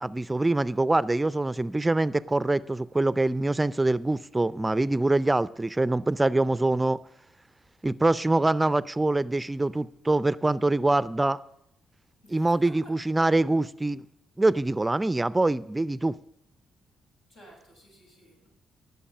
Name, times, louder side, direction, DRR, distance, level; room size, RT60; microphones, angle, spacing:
voice 1, 0.0-7.0 7.8-11.4 12.3-14.0 14.4-16.1, right 2 dB, 20° right, 0.4 m, -24 dB
voice 2, 12.2-12.9 17.3-18.5, right 1 dB, 90° left, 6.0 m, -53 dB
18.5 x 7.0 x 5.5 m
hypercardioid pair, 50°, 0 cm